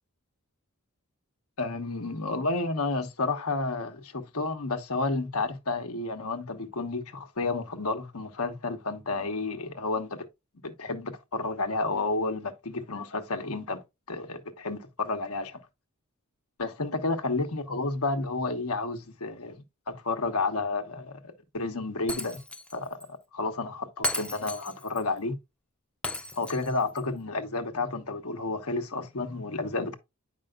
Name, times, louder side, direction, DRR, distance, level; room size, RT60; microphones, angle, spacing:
voice 1, 1.6-10.2 10.6-13.8 14.1-15.6 16.6-22.4 22.7-25.4 26.4-30.0, left 3 dB, 80° left, 1.1 m, -31 dB
Shatter, 22.1-22.7 23.0-23.1 24.0-25.0 26.0-27.0, left 1 dB, 5° left, 0.5 m, -34 dB
8.9 x 5.5 x 2.4 m
head